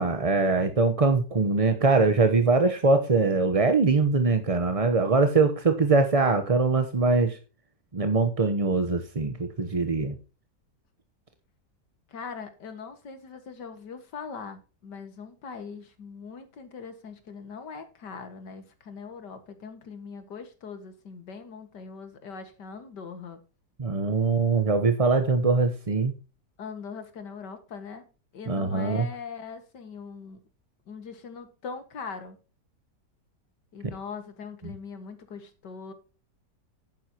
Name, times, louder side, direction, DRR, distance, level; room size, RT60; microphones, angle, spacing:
voice 1, 0.0-7.4 7.9-10.1 23.8-26.1 28.5-29.1, right 3 dB, 30° right, 0.7 m, -22 dB
voice 2, 12.1-23.4 26.6-28.1 28.3-30.4 30.9-32.4 33.7-35.9, left 5 dB, 75° left, 2.3 m, -41 dB
11.0 x 9.4 x 2.9 m
omnidirectional pair, 1.9 m